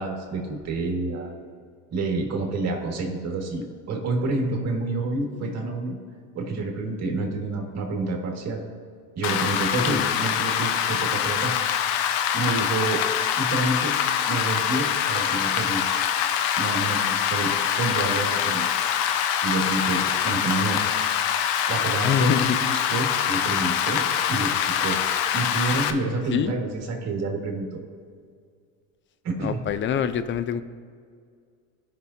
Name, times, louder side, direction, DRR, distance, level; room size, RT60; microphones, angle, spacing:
voice 1, 0.0-1.3 1.9-6.0 6.3-8.6 9.2-11.5 12.3-13.0 13.4-13.9 14.3-15.8 16.6-18.6 19.4-20.8 21.7-25.0 25.3-27.8 29.2-29.6, right 3 dB, 40° right, 1 dB, 2.0 m, -28 dB
Rain, 9.2-25.9, left 9 dB, 70° left, 0.8 m, -24 dB
voice 2, 9.8-10.2 22.0-22.6 26.3-26.5 29.4-30.6, left 8 dB, 30° left, 12 dB, 0.5 m, -25 dB
16.0 x 5.9 x 2.8 m, 2.1 s
supercardioid pair, 100°, 38 cm